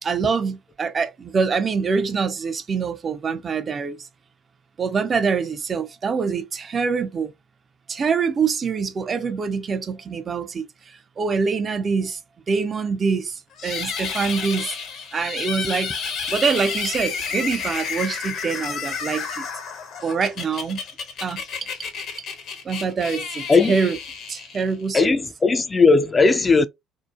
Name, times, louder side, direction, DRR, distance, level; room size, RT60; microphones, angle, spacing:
voice 1, 0.0-4.0 4.8-7.3 7.9-10.7 11.2-12.2 12.5-13.3 13.6-14.7 15.1-15.9 16.3-19.5 20.0-20.8 21.2-21.4 22.7-24.0 24.3-25.1, right 5 dB, 40° right, 0.5 m, -24 dB
sound 1, 13.6-24.9, left 6 dB, 55° left, 0.8 m, -31 dB
voice 2, 24.9-26.7, left 4 dB, 25° left, 0.4 m, -17 dB
2.7 x 2.1 x 2.3 m
hypercardioid pair, 55°, 0 cm